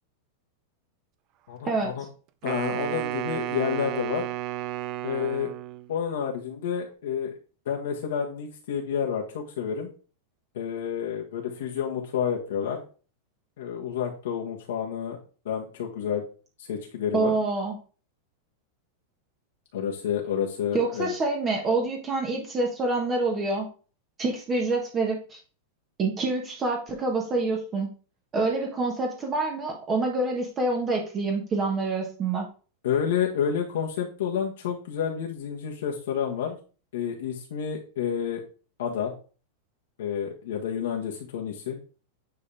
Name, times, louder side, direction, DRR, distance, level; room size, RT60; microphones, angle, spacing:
voice 1, 1.5-2.0 2.4-4.3 5.0-5.5 5.9-7.3 7.6-9.9 10.5-12.8 13.6-15.2 15.4-16.2 16.6-17.3 19.7-21.1 32.8-36.6 36.9-38.4 38.8-39.1 40.0-41.8, left 8 dB, 80° left, -1 dB, 1.5 m, -29 dB
Wind instrument woodwind instrument, 2.4-5.9, right 15 dB, 35° right, 0.5 m, -32 dB
voice 2, 17.1-17.7 20.7-23.7 24.2-25.4 26.0-27.9 28.3-32.5, right 3 dB, 20° right, 1 dB, 1.3 m, -26 dB
9.4 x 4.1 x 3.4 m, 0.38 s
supercardioid pair, 155°, 0 cm